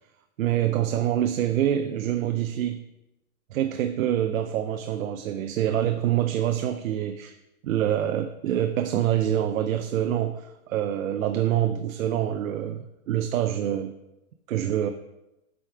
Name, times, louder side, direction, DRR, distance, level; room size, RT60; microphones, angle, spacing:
voice 1, 0.4-2.8 3.5-7.3 7.6-13.9 14.5-14.9, right 11 dB, 70° right, 7 dB, 0.7 m, -26 dB
8.1 x 5.0 x 4.6 m, 0.94 s
supercardioid pair, 170°, 42 cm